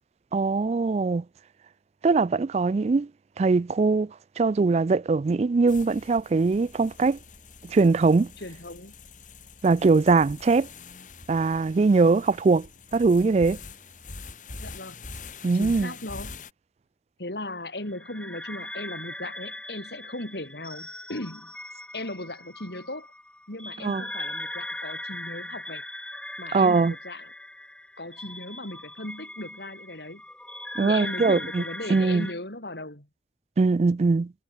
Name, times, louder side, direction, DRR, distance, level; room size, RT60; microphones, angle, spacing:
voice 1, 0.3-1.2 2.0-3.1 3.4-4.1 4.4-7.2 7.6-8.3 9.6-10.7 11.3-12.7 12.9-13.6 15.4-15.9 23.8-24.0 26.5-26.9 30.8-31.6 31.9-32.3 33.6-34.3, right 4 dB, 35° right, 0.3 m, -21 dB
sound 1, 5.7-16.5, left 3 dB, 45° left, 4.0 m, -44 dB
voice 2, 8.4-8.9 14.6-15.0 15.5-16.4 17.2-21.5 21.9-23.1 23.5-25.8 26.4-27.3 28.0-30.2 30.8-33.1, left 1 dB, 70° left, 5.6 m, -37 dB
sound 2, 17.9-32.3, left 1 dB, 5° left, 1.1 m, -39 dB
head